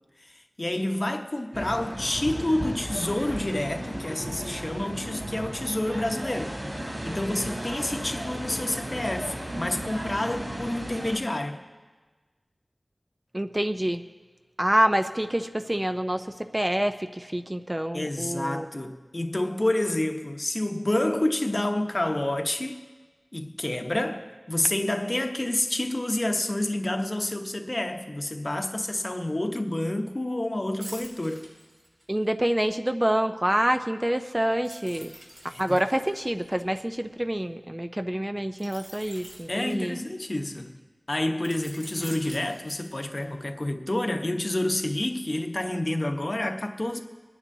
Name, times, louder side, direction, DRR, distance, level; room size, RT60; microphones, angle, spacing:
voice 1, 0.2-6.6 7.0-11.6 17.9-22.8 23.3-31.4 35.5-35.8 39.5-40.8 41.1-47.0, left 1 dB, 40° left, 0.9 m, -29 dB
sound 1, 1.5-11.2, right 1 dB, 40° right, 4.6 m, -35 dB
voice 2, 13.3-14.0 14.6-18.6 32.1-35.2 35.4-40.0, right 1 dB, 20° right, 0.4 m, -27 dB
sound 2, 30.8-32.3 34.6-37.4 38.6-40.4 41.4-43.3 43.7-43.9, right 1 dB, 70° right, 3.4 m, -46 dB
23.5 x 10.0 x 2.7 m
wide cardioid pair, 60°, 0 cm